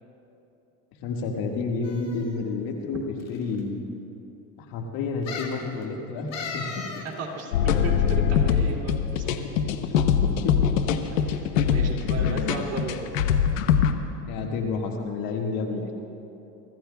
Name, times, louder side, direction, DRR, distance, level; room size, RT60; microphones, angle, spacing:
voice 1, 1.0-3.0 3.3-3.8 4.6-6.7 9.8-10.0 10.2-10.6 12.2-12.6 14.3-16.0, left 4 dB, 60° left, 2 dB, 1.8 m, -30 dB
sound 1, 1.8-2.4 3.2-3.3 3.6-3.7 5.3-5.6 6.3-7.1 7.4-7.5, left 5 dB, 40° left, 1.8 m, -36 dB
voice 2, 7.2-9.7 11.2-13.3, right 3 dB, 40° right, -1 dB, 2.7 m, -35 dB
sound 2, 7.5-13.9, left 7 dB, 90° left, 0.8 m, -22 dB
24.0 x 14.5 x 2.3 m, 2.9 s
supercardioid pair, 95°, 39 cm